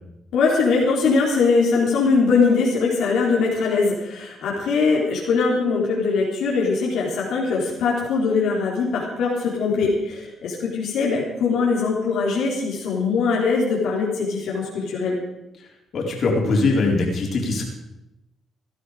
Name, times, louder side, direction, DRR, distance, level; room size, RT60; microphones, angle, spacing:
voice 1, 0.3-15.1, left 4 dB, 80° left, -4 dB, 3.8 m, -21 dB
voice 2, 15.9-17.6, left 3 dB, 55° left, -1 dB, 4.5 m, -21 dB
18.0 x 12.0 x 5.1 m, 0.88 s
cardioid pair, 90°, 0 cm